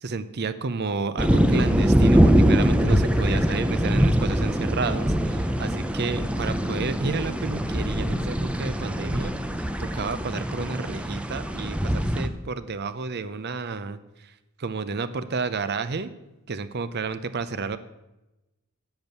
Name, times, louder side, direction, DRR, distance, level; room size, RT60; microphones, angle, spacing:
voice 1, 0.0-14.3 14.6-16.1 16.5-17.8, right 4 dB, 45° right, 13 dB, 0.6 m, -31 dB
sound 1, 1.2-12.3, equal, 5° right, 0.6 m, -23 dB
8.8 x 8.0 x 8.0 m, 0.98 s
head